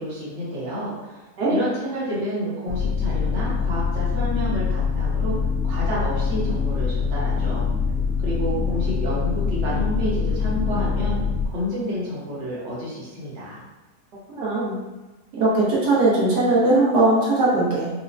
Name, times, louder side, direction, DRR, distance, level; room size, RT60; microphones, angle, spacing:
voice 1, 0.0-1.2 1.5-5.3 5.6-7.6 8.2-11.2 11.4-13.6, equal, 50° right, -7 dB, 1.2 m, -29 dB
sound 1, 2.7-11.5, left 5 dB, 70° left, 0.9 m, -24 dB
voice 2, 14.4-14.8 15.4-17.9, right 2 dB, 75° right, -7 dB, 1.5 m, -19 dB
4.2 x 2.2 x 2.5 m, 1.2 s
omnidirectional pair, 1.8 m